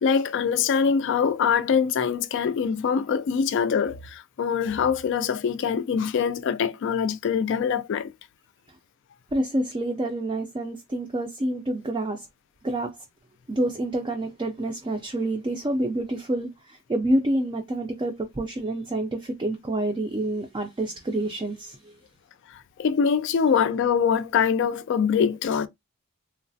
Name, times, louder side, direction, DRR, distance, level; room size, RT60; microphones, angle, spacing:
voice 1, 0.0-8.1 22.5-25.7, left 6 dB, 55° left, 0.3 m, -24 dB
voice 2, 9.3-12.3 12.6-13.0 13.5-22.0, right 1 dB, 20° right, 0.4 m, -28 dB
3.1 x 2.0 x 2.6 m
head